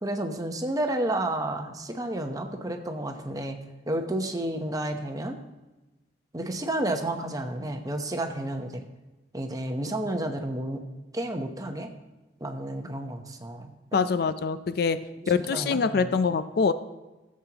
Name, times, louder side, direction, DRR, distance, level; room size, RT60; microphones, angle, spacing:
voice 1, 0.0-3.6 3.9-5.4 6.3-8.9 9.3-10.8 11.1-11.9 12.4-14.0 15.2-16.1, right 1 dB, 20° right, 5 dB, 0.8 m, -31 dB
voice 2, 13.9-15.0 15.3-16.7, left 5 dB, 60° left, 12 dB, 0.4 m, -24 dB
14.5 x 7.5 x 2.9 m, 1.1 s
head